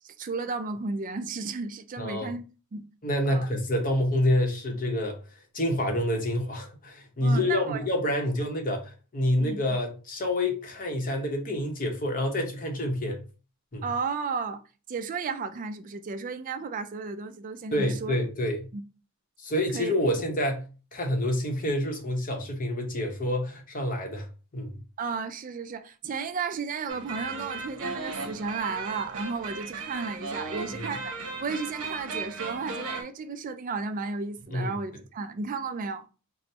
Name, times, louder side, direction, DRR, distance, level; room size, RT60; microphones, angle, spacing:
voice 1, 0.0-2.4 2.7-2.9 3.3-3.4 7.2-7.8 9.4-9.6 13.8-14.6 14.9-18.1 18.7-18.8 19.7-20.2 25.0-31.1 31.4-36.0, right 4 dB, 35° right, 0.3 m, -33 dB
voice 2, 2.0-2.3 3.0-5.2 5.5-13.2 13.7-13.8 17.7-18.7 19.4-20.6 20.9-24.3 24.5-24.8 30.7-30.9 34.5-34.7, left 1 dB, 40° left, 0.7 m, -27 dB
sound 1, 26.9-33.0, right 3 dB, 80° right, 0.8 m, -36 dB
4.3 x 2.0 x 3.2 m
head